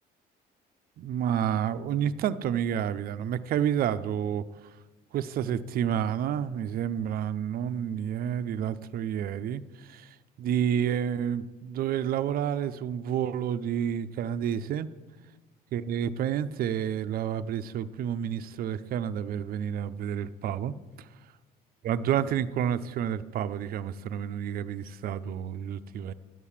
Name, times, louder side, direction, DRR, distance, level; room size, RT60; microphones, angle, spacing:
voice 1, 1.0-4.4 5.1-14.9 15.7-21.1 21.8-26.1, right 9 dB, 60° right, 12 dB, 0.6 m, -30 dB
11.0 x 8.3 x 7.3 m, 1.2 s
cardioid pair, 110°, 17 cm